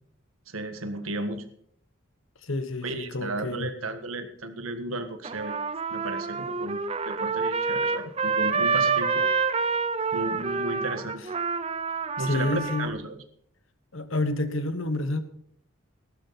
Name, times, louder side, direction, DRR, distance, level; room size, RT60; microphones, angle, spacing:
voice 1, 0.5-1.5 2.8-5.6 5.9-6.8 7.0-9.3 10.1-11.2 12.2-13.2, right 2 dB, 85° right, 8 dB, 1.6 m, -34 dB
voice 2, 2.4-3.8 12.2-12.9 13.9-15.2, left 2 dB, 70° left, 11 dB, 1.3 m, -29 dB
Trumpet, 5.2-12.9, right 5 dB, 30° right, 0.6 m, -27 dB
15.5 x 12.5 x 4.2 m, 0.66 s
head